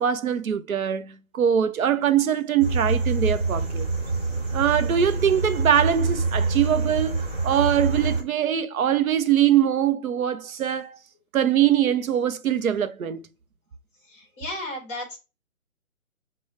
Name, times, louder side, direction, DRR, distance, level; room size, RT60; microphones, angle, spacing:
voice 1, 0.0-3.8 4.5-11.0 11.3-13.2, right 9 dB, 85° right, 0.7 m, -22 dB
sound 1, 2.6-8.2, right 3 dB, 45° right, 1.4 m, -26 dB
voice 2, 13.9-15.2, left 1 dB, 10° left, 0.8 m, -34 dB
4.9 x 2.3 x 3.1 m
hypercardioid pair, 165°, 41 cm